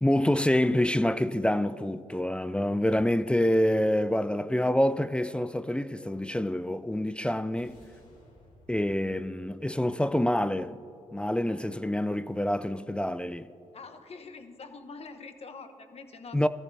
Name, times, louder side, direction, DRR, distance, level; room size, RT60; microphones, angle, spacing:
voice 1, 0.0-7.8 8.7-10.7 11.1-13.5 16.3-16.5, left 1 dB, 5° left, 0.4 m, -26 dB
sound 1, 7.6-12.0, left 1 dB, 85° left, 3.0 m, -60 dB
voice 2, 13.7-16.5, left 4 dB, 50° left, 1.1 m, -45 dB
17.5 x 13.5 x 2.8 m
supercardioid pair, 60°, 14 cm